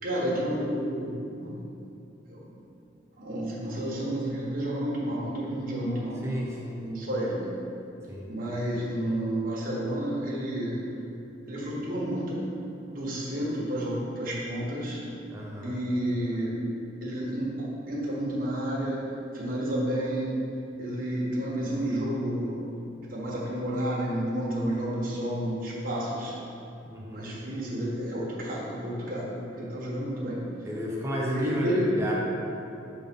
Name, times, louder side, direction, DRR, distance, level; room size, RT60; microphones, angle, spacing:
voice 1, 0.0-1.6 2.3-2.4 3.2-6.2 6.8-7.5 8.3-10.8 11.5-12.4 12.9-15.0 15.6-16.6 17.0-19.0 19.3-20.4 20.8-22.6 23.1-26.4 27.1-30.4 31.3-31.9, right 1 dB, 45° right, -5 dB, 1.5 m, -30 dB
voice 2, 6.2-6.8 8.1-8.2 15.3-15.7 26.9-27.3 30.6-32.1, equal, 15° right, -4 dB, 0.7 m, -31 dB
6.8 x 4.0 x 5.4 m, 2.7 s
head